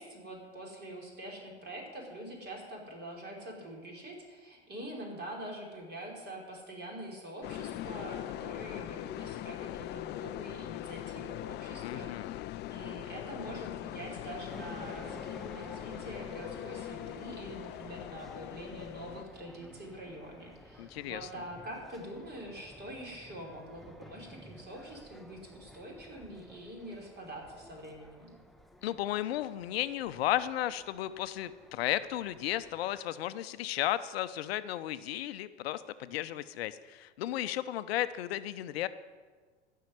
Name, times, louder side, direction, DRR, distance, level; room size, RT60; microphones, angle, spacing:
voice 1, 0.0-12.4 12.7-28.3, right 1 dB, 30° right, 0 dB, 5.1 m, -45 dB
sound 1, 7.4-19.2, left 14 dB, 30° left, 0.5 m, -41 dB
voice 2, 11.8-12.4 20.8-21.2 28.8-38.9, left 13 dB, 65° left, 13 dB, 0.7 m, -34 dB
sound 2, 14.5-33.0, equal, ahead, 0.8 m, -53 dB
14.5 x 6.6 x 9.6 m, 1.5 s
figure-of-eight pair, 85°, 34 cm